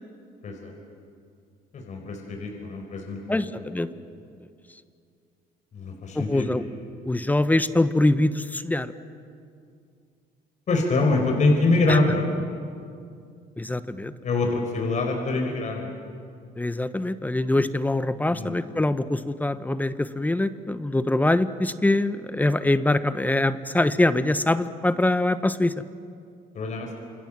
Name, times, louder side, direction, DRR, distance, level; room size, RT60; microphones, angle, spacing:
voice 1, 1.7-3.4 5.7-6.5 10.7-12.3 14.2-15.9 18.3-18.6 26.5-26.9, left 2 dB, 45° left, 2 dB, 4.7 m, -24 dB
voice 2, 3.3-3.9 6.1-6.6 7.0-8.9 11.9-12.0 13.6-14.1 16.6-25.7, left 2 dB, 10° left, 12 dB, 1.0 m, -23 dB
28.5 x 27.5 x 7.5 m, 2.4 s
cardioid pair, 110°, 17 cm